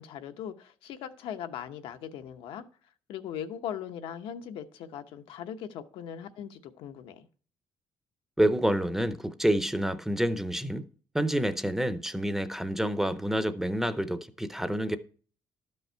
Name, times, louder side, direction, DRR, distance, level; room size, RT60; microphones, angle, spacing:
voice 1, 0.0-2.6 3.1-7.3, left 9 dB, 85° left, 0.9 m, -39 dB
voice 2, 8.4-10.8 11.1-15.0, right 1 dB, 5° right, 0.6 m, -28 dB
12.0 x 5.5 x 4.5 m
cardioid pair, 130°, 9 cm